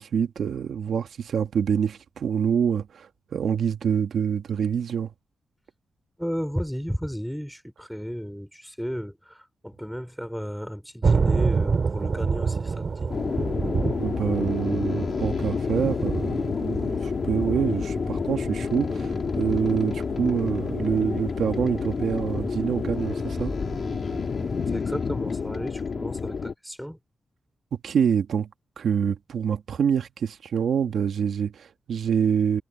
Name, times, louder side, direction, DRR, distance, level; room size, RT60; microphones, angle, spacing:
voice 1, 0.0-5.1 14.0-23.5 27.7-28.5 28.8-32.6, right 7 dB, 75° right, 1.9 m, -26 dB
voice 2, 6.2-13.1 24.0-24.2 24.7-27.0, equal, ahead, 3.2 m, -33 dB
sound 1, 11.0-24.8, right 4 dB, 40° right, 4.6 m, -30 dB
sound 2, 13.1-26.5, left 5 dB, 45° left, 2.0 m, -29 dB
wide cardioid pair, 150°, 0 cm